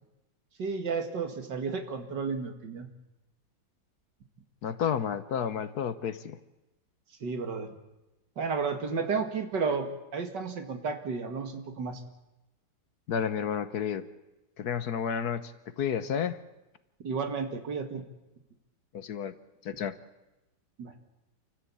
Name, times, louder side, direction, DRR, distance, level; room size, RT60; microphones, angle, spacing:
voice 1, 0.6-2.9 7.2-7.7 8.4-12.0 17.0-18.0 20.8-20.9, right 5 dB, 70° right, 6 dB, 2.6 m, -32 dB
voice 2, 4.6-6.4 13.1-14.0 14.6-15.5 15.8-16.4 18.9-19.3 19.6-19.9, left 7 dB, 65° left, 13 dB, 1.4 m, -31 dB
28.5 x 14.0 x 8.6 m, 1.0 s
omnidirectional pair, 1.9 m